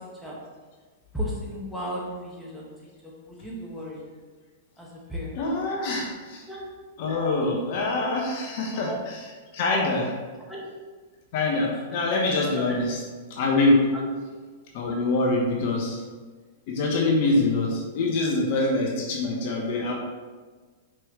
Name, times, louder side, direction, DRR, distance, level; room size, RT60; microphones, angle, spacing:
voice 1, 1.1-2.7 3.0-4.1 4.8-5.4 6.5-6.7 8.7-9.0 10.5-10.6 11.9-12.0 12.6-12.8 13.9-14.1, equal, ahead, -5 dB, 1.7 m, -35 dB
voice 2, 5.3-6.4 7.0-10.1 11.3-13.0 13.3-13.8 14.7-16.0 16.7-19.9, left 2 dB, 55° left, -1 dB, 1.1 m, -25 dB
6.0 x 5.0 x 3.2 m, 1.4 s
hypercardioid pair, 105°, 0 cm